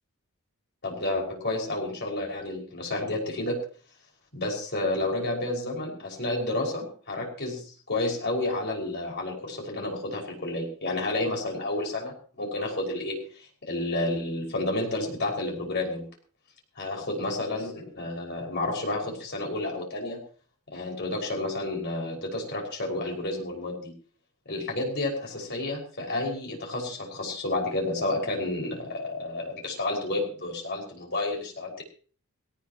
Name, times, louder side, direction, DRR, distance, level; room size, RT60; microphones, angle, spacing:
voice 1, 0.8-3.6 4.3-13.2 13.6-16.1 16.8-20.2 20.7-23.9 24.5-31.8, left 2 dB, 50° left, -1 dB, 5.9 m, -30 dB
19.5 x 18.5 x 3.1 m, 0.42 s
head